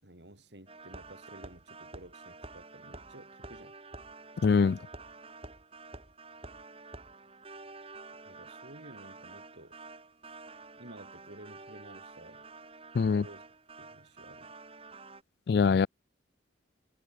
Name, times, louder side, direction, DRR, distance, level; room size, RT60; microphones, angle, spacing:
voice 1, 0.0-3.8 8.2-9.8 10.8-12.4 13.0-13.4 13.8-14.5, right 1 dB, 65° right, 4.4 m, -52 dB
sound 1, 0.7-15.2, right 3 dB, 30° right, 3.5 m, -49 dB
voice 2, 4.4-4.8 12.9-13.2 15.5-15.9, left 5 dB, 55° left, 0.3 m, -23 dB
head